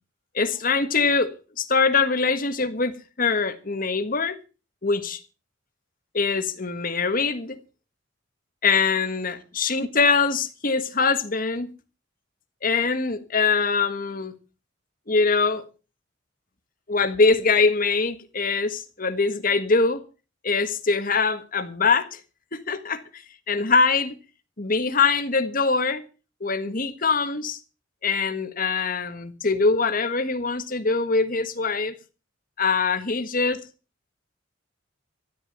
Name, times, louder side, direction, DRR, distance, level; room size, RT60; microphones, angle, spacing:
voice 1, 0.3-4.4 4.8-5.2 6.1-7.6 8.6-11.7 12.6-14.3 15.1-15.6 16.9-20.0 20.4-22.2 22.5-24.1 24.6-26.0 26.4-27.6 28.0-31.9 32.6-33.6, left 4 dB, 45° left, 1.6 m, -23 dB
13.5 x 10.5 x 6.7 m
head